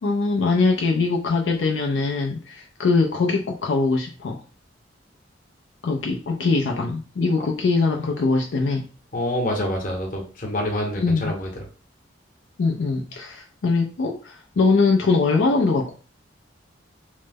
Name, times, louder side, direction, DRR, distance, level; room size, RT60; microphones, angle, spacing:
voice 1, 0.0-4.4 5.8-8.9 11.0-11.3 12.6-15.9, left 3 dB, 80° left, 1 dB, 0.4 m, -22 dB
voice 2, 9.1-11.5, left 1 dB, 50° left, 0 dB, 0.9 m, -26 dB
3.1 x 2.0 x 3.4 m, 0.37 s
head